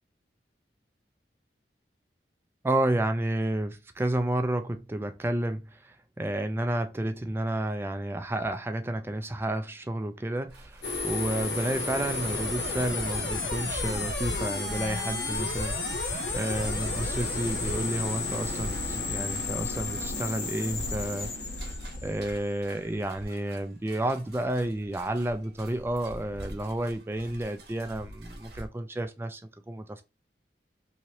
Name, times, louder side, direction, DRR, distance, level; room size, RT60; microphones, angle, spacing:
voice 1, 2.6-16.0 16.3-21.3 22.0-29.4 29.7-30.0, right 1 dB, 15° right, 0.3 m, -31 dB
sound 1, 10.5-28.7, equal, 65° right, 0.8 m, -42 dB
sound 2, 10.8-22.8, left 3 dB, 75° left, 1.1 m, -32 dB
2.9 x 2.6 x 2.8 m
head